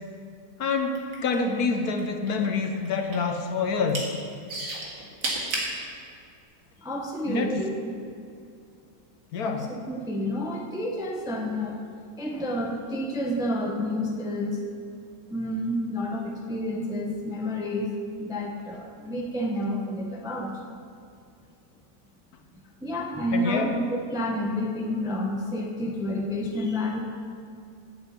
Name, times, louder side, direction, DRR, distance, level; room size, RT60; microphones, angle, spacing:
voice 1, 0.6-4.1 7.3-7.5 9.3-9.7 23.3-23.7, left 4 dB, 65° left, 5 dB, 1.2 m, -27 dB
sound 1, 0.9-2.0 2.3-3.3 3.7-4.1 4.5-5.7 6.4-6.5, right 2 dB, 80° right, 2.5 m, -31 dB
voice 2, 6.8-7.8 9.4-11.8 12.2-14.6 15.3-17.9 18.2-20.5 22.8-27.0, left 1 dB, 5° right, 0 dB, 0.6 m, -29 dB
7.9 x 7.9 x 8.1 m, 2.4 s
omnidirectional pair, 1.9 m